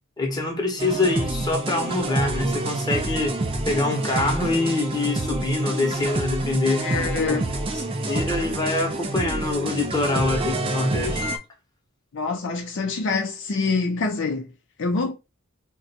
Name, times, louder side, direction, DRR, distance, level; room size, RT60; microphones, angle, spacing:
voice 1, 0.2-3.4 3.7-6.8 7.3-7.4 7.9-11.3, left 2 dB, 20° left, 0.9 m, -25 dB
sound 1, 0.8-11.4, right 2 dB, 25° right, 0.4 m, -27 dB
voice 2, 6.7-7.5 12.1-14.5 14.8-15.1, left 4 dB, 55° left, 0.5 m, -25 dB
2.5 x 2.2 x 4.0 m
head